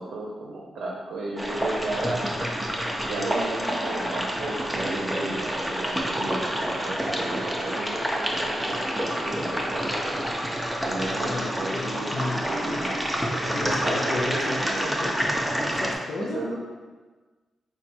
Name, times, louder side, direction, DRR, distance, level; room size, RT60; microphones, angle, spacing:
voice 1, 0.0-2.2 3.0-10.2 10.8-12.1 12.5-13.0 13.3-15.1 16.2-16.5, right 2 dB, 85° right, -2 dB, 0.6 m, -34 dB
sound 1, 1.4-16.0, equal, 5° right, 0.5 m, -28 dB
voice 2, 11.0-12.9 13.4-15.3 15.7-16.5, left 2 dB, 65° left, 0 dB, 0.4 m, -33 dB
3.8 x 2.2 x 4.3 m, 1.3 s
cardioid pair, 95°, 0 cm